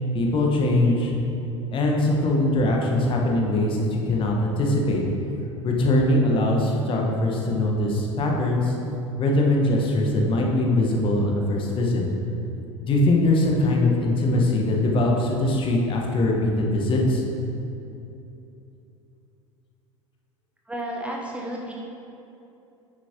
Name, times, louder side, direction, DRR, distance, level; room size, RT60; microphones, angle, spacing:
voice 1, 0.1-1.1 1.7-5.0 5.6-8.7 9.2-12.0 12.8-17.2, left 1 dB, 30° left, 0 dB, 1.3 m, -22 dB
voice 2, 20.7-21.7, right 1 dB, 5° right, -2 dB, 0.9 m, -32 dB
9.5 x 7.4 x 3.0 m, 2.8 s
figure-of-eight pair, 75°, 16 cm